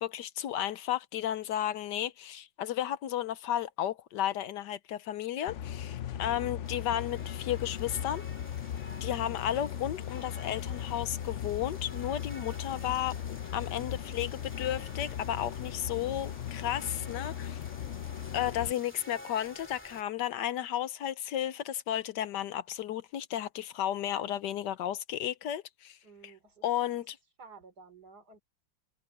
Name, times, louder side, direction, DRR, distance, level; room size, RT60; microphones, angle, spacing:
voice 1, 0.0-8.2 9.0-17.6 18.3-26.0 26.2-26.3 26.6-27.2, left 11 dB, 70° left, 1.2 m, -33 dB
sound 1, 5.5-18.7, left 10 dB, 85° left, 0.6 m, -38 dB
sound 2, 6.6-20.0, left 1 dB, 5° left, 2.6 m, -51 dB
voice 2, 26.0-26.7 27.4-28.4, right 4 dB, 55° right, 3.8 m, -53 dB
omnidirectional pair, 2.1 m